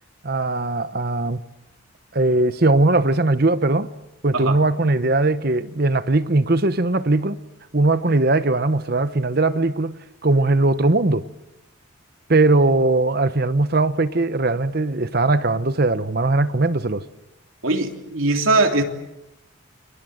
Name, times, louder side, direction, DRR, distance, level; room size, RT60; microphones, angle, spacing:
voice 1, 0.2-1.4 2.1-3.9 4.2-7.4 7.7-11.3 12.3-17.0, right 2 dB, 45° right, 0.9 m, -19 dB
voice 2, 17.6-18.8, right 2 dB, 75° right, 3.2 m, -20 dB
29.5 x 23.0 x 7.9 m
head